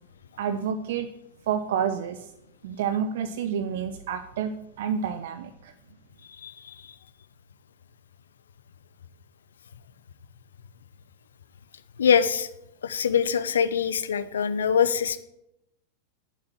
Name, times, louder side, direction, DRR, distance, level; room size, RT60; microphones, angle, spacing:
voice 1, 0.4-1.1 1.5-2.3 2.6-5.7, right 8 dB, 55° right, 9 dB, 0.7 m, -29 dB
voice 2, 12.0-12.5 12.8-15.2, left 7 dB, 65° left, 14 dB, 0.7 m, -23 dB
8.8 x 8.5 x 7.4 m, 0.84 s
figure-of-eight pair, 90°, 0 cm